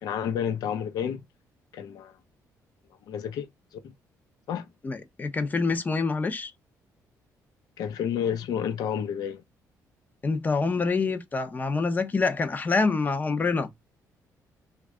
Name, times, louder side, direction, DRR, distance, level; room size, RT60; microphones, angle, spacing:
voice 1, 0.0-1.2 1.7-2.1 3.1-3.8 4.5-4.7 7.8-9.4, left 8 dB, 75° left, 0.8 m, -30 dB
voice 2, 4.8-6.5 10.2-13.7, left 4 dB, 25° left, 0.7 m, -26 dB
3.2 x 2.4 x 3.5 m
cardioid pair, 105°, 7 cm